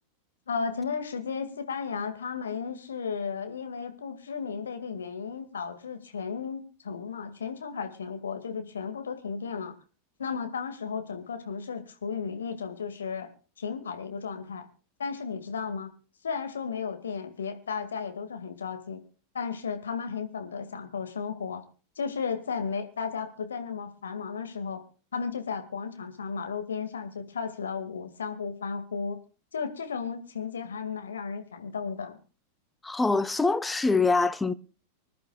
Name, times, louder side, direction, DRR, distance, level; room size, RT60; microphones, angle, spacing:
voice 1, 0.5-9.7 10.2-13.3 13.6-14.7 15.0-15.9 16.2-19.0 19.3-21.6 22.0-24.8 25.1-29.2 29.5-32.2, left 5 dB, 70° left, 2.0 m, -34 dB
voice 2, 32.8-34.5, left 3 dB, 10° left, 0.7 m, -24 dB
25.5 x 11.0 x 2.3 m
figure-of-eight pair, 90°, 0 cm